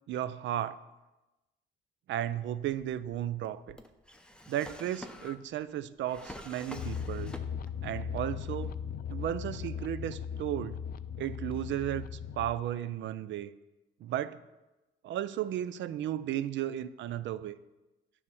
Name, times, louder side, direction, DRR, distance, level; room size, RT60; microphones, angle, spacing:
voice 1, 0.1-0.8 2.1-3.8 4.5-7.4 7.8-8.7 9.1-10.8 11.2-13.5 14.0-14.4 15.0-17.5, right 11 dB, 70° right, 16 dB, 0.4 m, -34 dB
Drawer open or close, 2.6-7.8 8.1-9.0, left 1 dB, 5° left, 0.7 m, -48 dB
sound 1, 6.7-12.5, left 7 dB, 50° left, 0.4 m, -38 dB
9.4 x 3.5 x 6.9 m, 1.1 s
cardioid pair, 90°, 20 cm